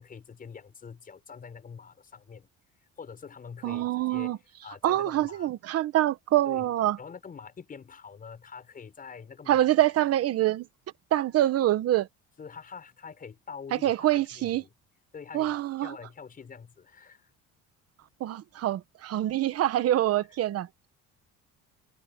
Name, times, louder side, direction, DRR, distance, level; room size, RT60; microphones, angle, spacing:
voice 1, 0.0-2.5 3.0-4.3 4.6-5.5 6.5-6.7 7.0-9.7 12.4-14.7 15.1-17.3, left 6 dB, 25° left, 6.3 m, -45 dB
voice 2, 3.6-4.4 4.8-7.0 9.5-10.7 11.1-12.1 13.7-14.6 15.3-15.9 18.2-20.7, right 13 dB, 50° right, 1.3 m, -25 dB
cardioid pair, 160°, 31 cm